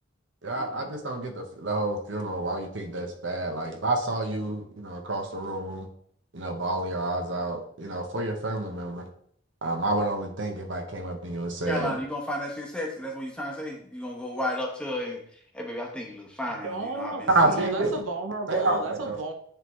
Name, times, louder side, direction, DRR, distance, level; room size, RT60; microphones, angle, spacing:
voice 1, 0.4-5.9 6.3-9.0 9.6-11.9 17.3-17.9 18.5-19.2, right 2 dB, 65° right, 4 dB, 1.1 m, -28 dB
voice 2, 11.7-15.2 15.5-17.3, left 1 dB, 5° left, 0 dB, 1.0 m, -33 dB
voice 3, 16.5-19.3, right 3 dB, 85° right, 4 dB, 0.8 m, -33 dB
8.8 x 3.7 x 3.1 m, 0.64 s
head